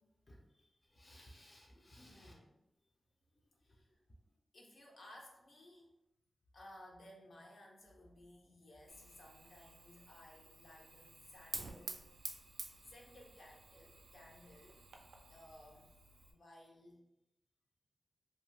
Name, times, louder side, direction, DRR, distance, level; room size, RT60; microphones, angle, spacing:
voice 1, 0.3-2.3, equal, 25° left, -2 dB, 0.4 m, -60 dB
voice 2, 2.1-2.6 3.6-4.0 4.5-5.9 6.5-12.3 12.8-14.8 15.3-16.0 16.3-17.0, left 1 dB, 65° left, -1 dB, 0.6 m, -59 dB
Fire, 8.9-16.3, right 3 dB, 85° right, 0.3 m, -51 dB
2.5 x 2.3 x 3.1 m, 0.89 s
wide cardioid pair, 150°, 0 cm